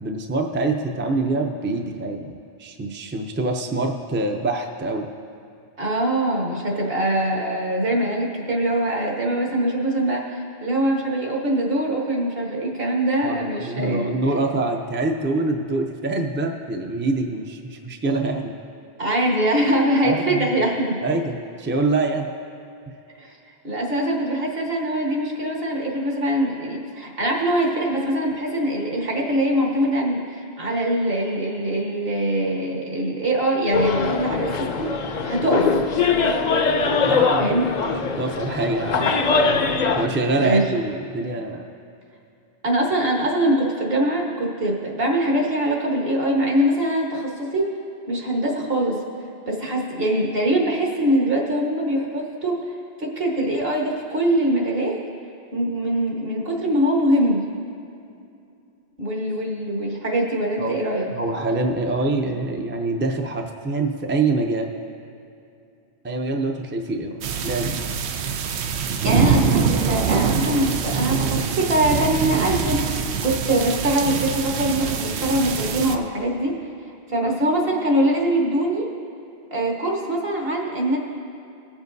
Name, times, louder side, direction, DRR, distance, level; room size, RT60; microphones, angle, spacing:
voice 1, 0.0-5.1 13.2-18.5 20.0-20.5 21.0-22.3 37.0-37.6 37.8-37.9 38.2-39.1 40.0-41.6 60.6-60.8 61.1-64.7 66.0-67.8, right 2 dB, 15° right, 3 dB, 0.4 m, -25 dB
voice 2, 5.8-14.6 19.0-21.0 23.2-23.3 23.6-35.8 37.4-37.6 40.3-40.6 42.6-47.7 48.1-49.0 49.5-52.6 53.0-55.0 55.5-57.5 59.0-61.1 69.0-72.8 73.2-76.5 77.1-78.9 79.5-81.0, right 1 dB, 60° right, -2 dB, 1.7 m, -23 dB
sound 1, 33.7-40.1, left 4 dB, 50° left, 0.6 m, -22 dB
sound 2, 67.2-76.0, right 6 dB, 85° right, 0.9 m, -24 dB
20.5 x 7.1 x 2.7 m, 2.5 s
omnidirectional pair, 1.1 m